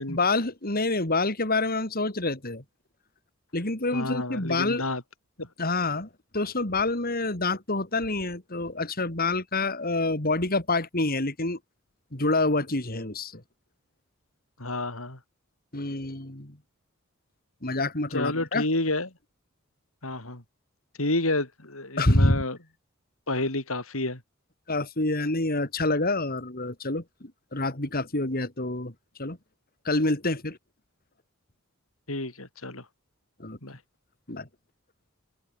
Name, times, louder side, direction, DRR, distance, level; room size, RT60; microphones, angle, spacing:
voice 1, 0.1-2.6 3.5-4.8 5.6-11.6 12.1-13.4 15.7-16.6 17.6-18.7 22.0-22.4 24.7-28.9 29.2-29.4 29.8-30.6 33.4-33.6 34.3-34.5, left 2 dB, 45° left, 3.8 m, -27 dB
voice 2, 3.9-5.0 5.4-5.5 14.6-15.2 18.1-19.1 20.0-20.4 21.0-22.6 23.3-24.2 32.1-32.8 33.6-33.8, left 2 dB, 80° left, 6.4 m, -29 dB
head